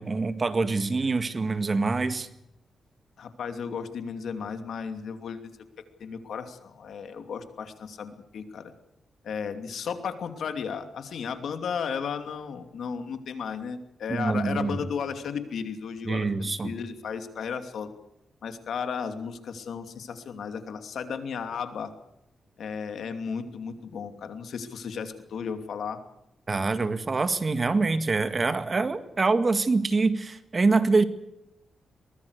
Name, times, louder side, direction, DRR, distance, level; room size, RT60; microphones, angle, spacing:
voice 1, 0.0-2.3 14.1-14.8 16.0-16.7 26.5-31.0, right 3 dB, 35° right, 11 dB, 1.8 m, -25 dB
voice 2, 3.2-5.4 6.0-8.7 9.2-17.9 18.4-21.9 22.6-26.0, left 6 dB, 75° left, 8 dB, 2.7 m, -34 dB
23.0 x 20.5 x 6.6 m, 0.84 s
cardioid pair, 90°, 0 cm